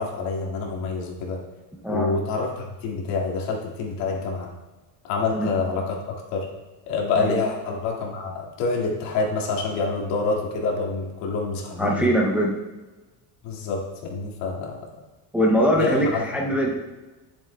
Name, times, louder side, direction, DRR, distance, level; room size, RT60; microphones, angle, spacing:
voice 1, 0.0-1.4 1.9-4.5 5.0-6.5 6.9-12.1 13.4-14.8 15.7-16.2, left 4 dB, 85° left, -1 dB, 2.0 m, -27 dB
voice 2, 11.8-12.5 15.3-16.8, equal, 5° right, -2 dB, 0.4 m, -22 dB
11.0 x 7.3 x 2.2 m, 1.2 s
cardioid pair, 180°, 41 cm